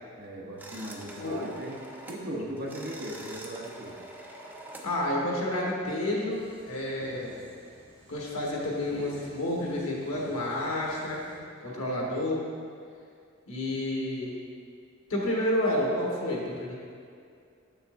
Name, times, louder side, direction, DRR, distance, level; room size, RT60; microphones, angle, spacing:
voice 1, 0.2-1.8 2.1-4.0, right 1 dB, 45° right, -2 dB, 0.9 m, -38 dB
sound 1, 0.6-2.3 2.6-4.9, right 1 dB, 10° right, 0.4 m, -45 dB
voice 2, 1.2-1.5 4.8-7.4 8.1-11.2 11.6-12.4 13.5-14.3 15.1-16.7, left 1 dB, 90° left, -3 dB, 1.3 m, -30 dB
sound 2, 6.3-11.4, equal, 25° right, 1.1 m, -50 dB
7.0 x 6.8 x 2.6 m, 2.3 s
head